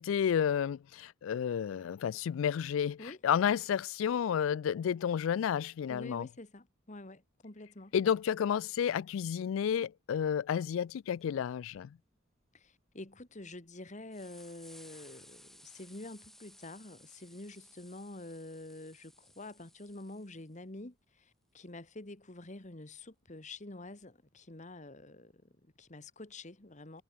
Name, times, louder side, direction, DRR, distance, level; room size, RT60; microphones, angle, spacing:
voice 1, 0.0-6.3 7.9-12.0, left 8 dB, 70° left, 0.3 m, -31 dB
voice 2, 5.9-7.9 12.5-27.0, left 2 dB, 35° left, 1.7 m, -48 dB
sound 1, 11.2-11.3 11.6-11.8 12.4-13.1 13.7-13.8 14.1-20.5 22.6-22.7 24.0-24.1, left 1 dB, ahead, 1.1 m, -58 dB
head